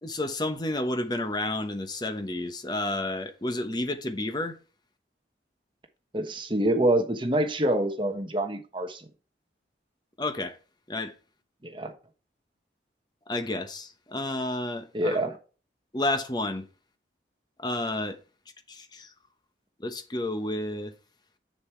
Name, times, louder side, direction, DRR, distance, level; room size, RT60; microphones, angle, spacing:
voice 1, 0.0-4.6 10.2-10.6 10.9-11.1 13.3-15.2 15.9-16.6 17.6-18.2 18.7-19.1 19.8-20.9, left 2 dB, 25° left, 1.0 m, -31 dB
voice 2, 6.1-9.0 11.6-11.9 14.9-15.4, right 1 dB, 25° right, 1.1 m, -26 dB
7.5 x 7.0 x 4.5 m
head